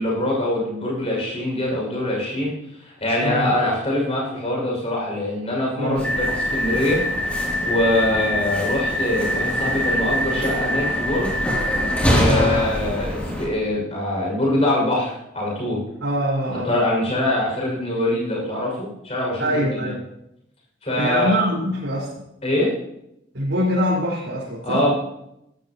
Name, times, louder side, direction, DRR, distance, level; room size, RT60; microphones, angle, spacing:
voice 1, 0.0-2.5 2.8-7.0 7.6-11.4 12.1-15.8 16.5-20.0 20.8-21.3 22.4-22.7 24.6-24.9, left 1 dB, 30° left, -3 dB, 6.5 m, -23 dB
voice 2, 3.2-3.5 5.8-6.0 12.2-12.6 16.0-16.7 19.4-20.0 21.0-22.2 23.3-24.8, equal, 85° right, -8 dB, 5.0 m, -23 dB
sound 1, 6.0-13.5, equal, 5° left, 3.1 m, -23 dB
18.0 x 14.0 x 3.1 m, 0.81 s
head